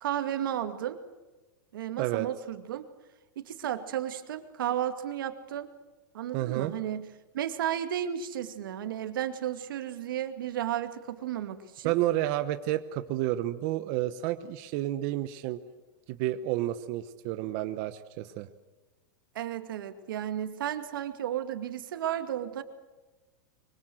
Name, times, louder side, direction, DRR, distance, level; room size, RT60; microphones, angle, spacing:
voice 1, 0.0-1.0 1.7-2.9 3.4-5.7 6.1-7.1 7.3-12.0 19.3-22.6, right 10 dB, 85° right, 8 dB, 2.3 m, -33 dB
voice 2, 6.3-6.8 11.8-15.6 16.1-18.5, right 14 dB, 45° right, 10 dB, 1.1 m, -30 dB
24.5 x 24.5 x 7.8 m, 1.1 s
supercardioid pair, 155°, 11 cm